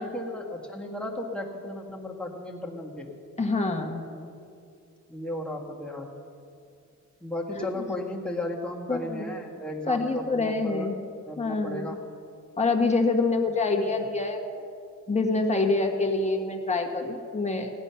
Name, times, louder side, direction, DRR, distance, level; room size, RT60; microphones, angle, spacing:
voice 1, 0.0-3.1 5.1-6.1 7.2-10.9 11.3-12.0, left 1 dB, 5° left, -2 dB, 1.7 m, -35 dB
voice 2, 3.4-4.1 7.6-7.7 8.9-9.2 9.9-11.0 11.4-12.0 12.6-14.4 15.1-17.7, left 3 dB, 20° left, 2 dB, 1.5 m, -26 dB
17.5 x 10.5 x 5.7 m, 2.5 s
wide cardioid pair, 140°, 31 cm